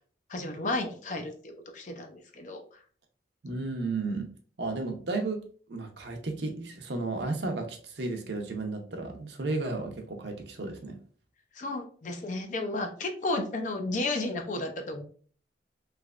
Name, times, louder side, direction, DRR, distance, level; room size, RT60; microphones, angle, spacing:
voice 1, 0.3-2.8 11.5-15.0, left 2 dB, 45° left, 5 dB, 0.5 m, -33 dB
voice 2, 3.4-4.3 4.6-5.4 5.7-11.0, right 3 dB, 65° right, 4 dB, 0.7 m, -33 dB
3.2 x 3.0 x 2.4 m, 0.44 s
head